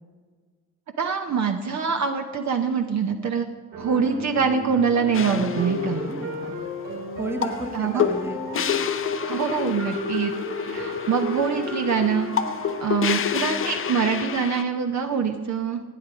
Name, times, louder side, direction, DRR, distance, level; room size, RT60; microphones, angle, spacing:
voice 1, 1.0-3.5 3.8-6.0 7.7-8.1 9.3-10.3 10.6-12.3 12.8-15.8, right 6 dB, 45° right, 5 dB, 0.8 m, -24 dB
sound 1, 3.7-12.9, equal, 80° right, 3.0 m, -33 dB
sound 2, 5.1-14.6, left 8 dB, 35° left, 0.6 m, -29 dB
voice 2, 5.8-6.6 7.2-8.4, right 2 dB, 5° right, 5 dB, 1.2 m, -33 dB
12.0 x 8.9 x 4.9 m, 1.5 s
hypercardioid pair, 50°, 40 cm